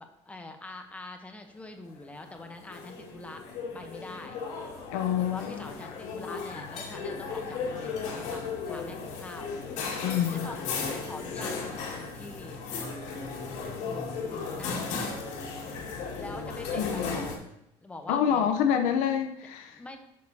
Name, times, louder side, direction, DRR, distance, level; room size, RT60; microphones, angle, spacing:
voice 1, 0.0-3.4 3.7-4.4 5.2-8.4 8.7-9.5 10.3-12.6 13.8-15.3 16.0-17.3 17.8-18.5 19.7-20.0, left 2 dB, 10° left, 5 dB, 0.9 m, -44 dB
sound 1, 2.3-17.3, left 4 dB, 70° left, 2.1 m, -36 dB
voice 2, 4.9-5.7 10.0-10.5 16.8-17.2 18.1-19.8, left 8 dB, 90° left, 6 dB, 0.7 m, -27 dB
11.5 x 6.6 x 2.8 m, 0.78 s
cardioid pair, 140°, 12 cm